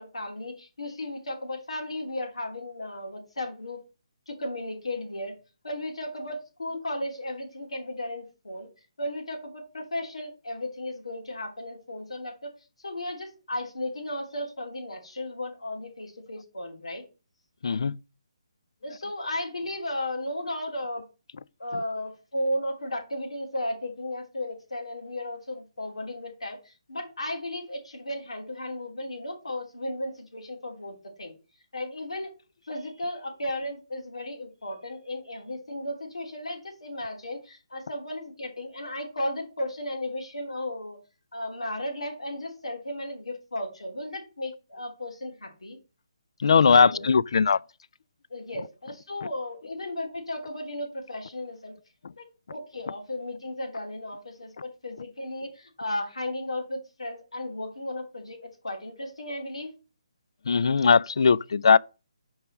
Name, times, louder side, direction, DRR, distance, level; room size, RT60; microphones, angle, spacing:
voice 1, 0.0-3.8 4.3-5.4 5.6-8.7 9.0-12.5 12.8-17.0 18.8-21.0 21.6-31.3 31.7-32.3 32.6-41.0 41.3-45.8 46.7-47.1 48.3-51.8 52.2-52.3 52.5-59.7, left 1 dB, 90° left, 3.1 m, -35 dB
voice 2, 17.6-18.0 46.4-47.6 60.5-61.8, left 5 dB, 65° left, 0.3 m, -19 dB
6.9 x 4.8 x 6.4 m
hypercardioid pair, 160°, 3 cm